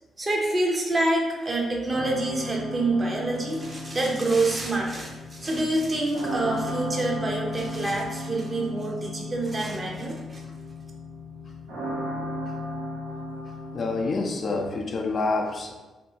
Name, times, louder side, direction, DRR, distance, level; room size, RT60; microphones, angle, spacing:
voice 1, 0.2-10.4, right 2 dB, 35° right, -1 dB, 0.7 m, -27 dB
sound 1, 1.9-14.2, left 1 dB, 80° right, 0.7 m, -35 dB
voice 2, 13.7-15.7, left 3 dB, 50° left, 2 dB, 0.4 m, -27 dB
2.7 x 2.6 x 2.7 m, 1.2 s
hypercardioid pair, 45°, 0 cm